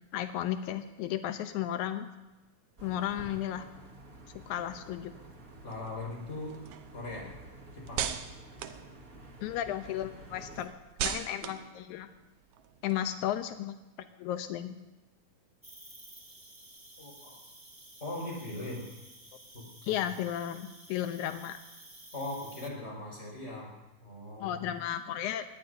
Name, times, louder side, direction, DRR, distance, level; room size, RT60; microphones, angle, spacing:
voice 1, 0.1-2.1 2.8-3.7 4.5-5.1 9.4-10.7 11.0-12.1 12.8-13.8 14.2-14.8 19.8-21.6 24.4-25.4, left 11 dB, 90° left, 8 dB, 2.1 m, -34 dB
sound 1, 2.8-10.7, right 1 dB, 35° right, 1.8 m, -51 dB
sound 2, 5.5-9.6 10.0-13.5, right 9 dB, 75° right, 2.1 m, -40 dB
voice 2, 5.6-6.6 6.9-7.3 7.7-8.1 17.0-17.4 18.0-18.8 19.5-20.0 22.1-23.7 24.0-24.7, left 2 dB, 20° left, -3 dB, 5.7 m, -40 dB
Cricket, 15.6-22.7, right 1 dB, 20° right, 0.8 m, -52 dB
21.5 x 18.5 x 2.7 m, 1.1 s
omnidirectional pair, 3.4 m